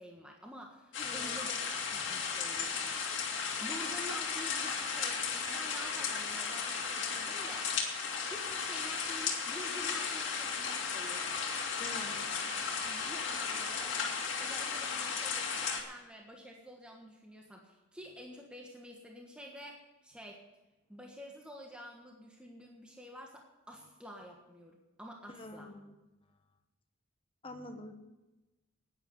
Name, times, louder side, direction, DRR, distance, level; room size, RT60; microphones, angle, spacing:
voice 1, 0.0-3.0 3.3-7.9 8.2-11.2 12.8-19.8 20.0-20.4 20.9-25.7, equal, 5° right, 0 dB, 1.4 m, -49 dB
sound 1, 0.9-15.8, left 5 dB, 65° left, 2.3 m, -35 dB
voice 2, 1.0-1.4 2.0-2.2 11.8-12.4 25.3-25.9 27.4-27.9, left 1 dB, 25° left, 5 dB, 1.3 m, -47 dB
11.0 x 9.7 x 7.9 m, 1.1 s
head